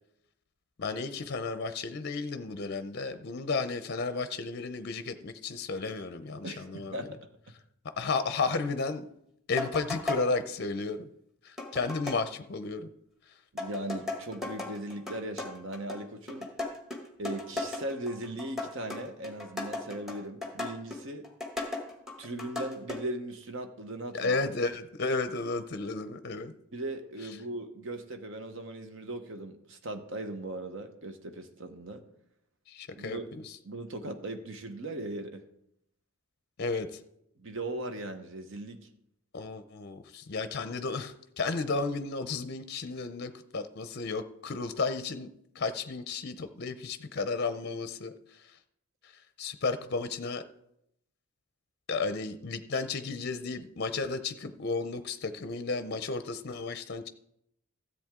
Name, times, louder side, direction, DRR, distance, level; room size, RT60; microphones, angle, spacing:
voice 1, 0.8-7.1 8.0-9.0 9.5-11.1 11.4-12.9 13.3-13.4 24.1-26.5 32.7-33.6 36.6-37.0 39.3-45.3 45.5-48.1 48.4-48.5 49.0-49.1 49.4-50.4 51.9-57.1, left 4 dB, 45° left, 10 dB, 0.5 m, -33 dB
voice 2, 6.4-7.3 13.5-16.5 17.2-21.3 22.2-24.3 26.7-32.0 32.9-33.3 33.6-35.4 37.4-38.9, right 1 dB, 55° right, 7 dB, 1.0 m, -38 dB
sound 1, 9.6-10.3 11.6-12.2 13.6-23.0, left 3 dB, ahead, 1.1 m, -36 dB
13.5 x 7.8 x 3.7 m, 0.77 s
head